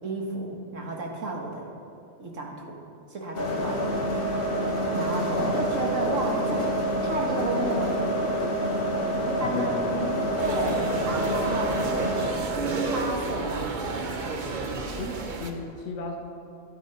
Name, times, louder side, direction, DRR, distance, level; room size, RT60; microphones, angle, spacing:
voice 1, 0.0-1.7 2.2-2.8 3.1-4.0 4.9-8.2 9.1-13.8, right 2 dB, 80° right, 0 dB, 2.0 m, -33 dB
sound 1, 3.3-12.3, equal, 50° left, 1.7 m, -27 dB
voice 2, 5.3-5.7 9.4-9.8 14.9-16.2, left 3 dB, 70° left, 2 dB, 1.3 m, -35 dB
sound 2, 10.4-15.5, right 3 dB, 45° right, 1.0 m, -32 dB
12.5 x 12.0 x 4.4 m, 2.6 s
omnidirectional pair, 1.3 m